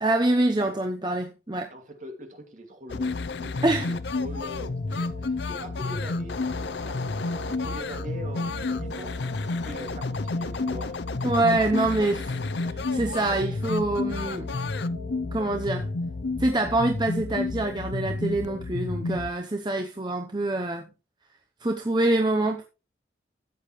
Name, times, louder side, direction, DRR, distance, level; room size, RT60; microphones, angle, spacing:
voice 1, 0.0-1.7 3.6-3.9 11.2-14.5 15.3-15.9 16.4-20.9 21.6-22.6, right 2 dB, 25° right, 0.8 m, -25 dB
voice 2, 1.7-11.0, equal, 40° right, 2.4 m, -43 dB
sound 1, 2.9-19.3, left 3 dB, 70° left, 0.6 m, -30 dB
sound 2, 3.4-18.2, right 3 dB, 30° left, 7.9 m, -46 dB
13.5 x 8.8 x 3.2 m
head